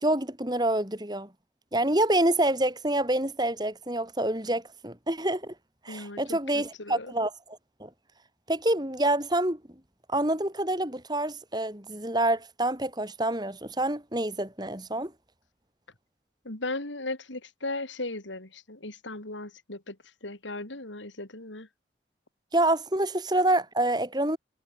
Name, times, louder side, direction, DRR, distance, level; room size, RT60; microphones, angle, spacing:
voice 1, 0.0-1.3 1.7-5.5 5.9-7.3 7.8-7.9 8.5-9.6 10.1-15.1 22.5-24.4, right 1 dB, 20° right, 3.8 m, -27 dB
voice 2, 5.9-7.1 16.4-21.7, left 2 dB, 90° left, 4.2 m, -37 dB
head